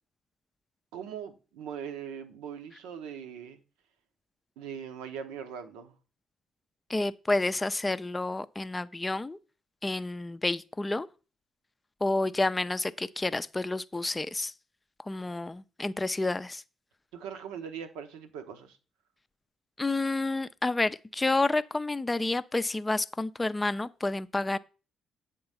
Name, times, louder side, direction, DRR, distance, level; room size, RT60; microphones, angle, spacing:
voice 1, 0.9-3.6 4.6-5.9 17.1-18.8, right 8 dB, 70° right, 0.8 m, -40 dB
voice 2, 6.9-9.4 9.8-11.1 12.0-14.5 15.1-16.6 19.8-24.6, left 2 dB, 20° left, 0.5 m, -29 dB
8.6 x 3.7 x 5.5 m
figure-of-eight pair, 45°, 0 cm